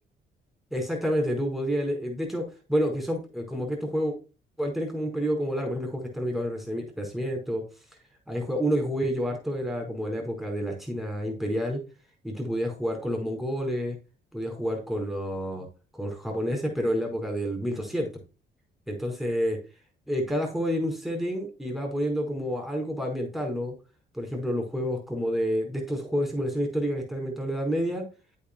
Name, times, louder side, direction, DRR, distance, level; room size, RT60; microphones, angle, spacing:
voice 1, 0.7-4.1 4.6-7.6 8.3-11.8 12.2-14.0 14.3-15.7 15.9-18.1 18.9-19.6 20.1-23.7 24.1-28.0, equal, ahead, 1 dB, 4.8 m, -29 dB
8.9 x 8.5 x 2.3 m, 0.32 s
cardioid pair, 90°, 20 cm